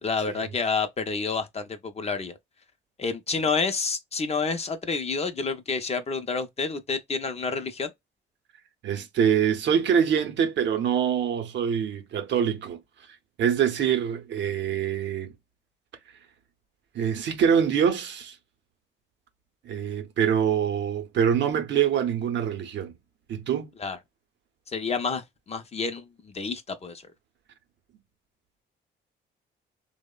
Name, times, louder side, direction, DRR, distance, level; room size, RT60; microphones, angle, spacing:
voice 1, 0.0-2.3 3.0-7.9 23.8-24.0 24.7-27.0, left 4 dB, 30° left, 0.5 m, -29 dB
voice 2, 8.8-12.8 13.1-15.3 16.9-18.4 19.6-22.9 23.3-23.7, right 8 dB, 65° right, 0.6 m, -25 dB
2.8 x 2.0 x 2.2 m
cardioid pair, 90°, 20 cm